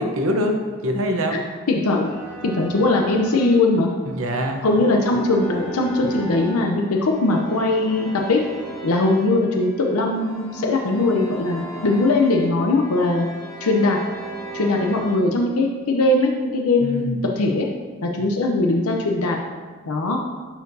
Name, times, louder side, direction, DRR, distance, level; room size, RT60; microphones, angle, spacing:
voice 1, 0.0-1.4 4.1-4.6 16.8-17.2, equal, 70° right, 4 dB, 0.8 m, -24 dB
voice 2, 1.7-2.1 2.4-3.9 4.6-8.4 8.8-13.3 13.6-14.0 14.5-17.7 18.0-19.4 19.9-20.2, left 2 dB, 85° left, 1 dB, 0.6 m, -20 dB
sound 1, 2.0-15.2, right 2 dB, 15° left, 1.5 m, -37 dB
11.5 x 4.5 x 2.7 m, 1.4 s
head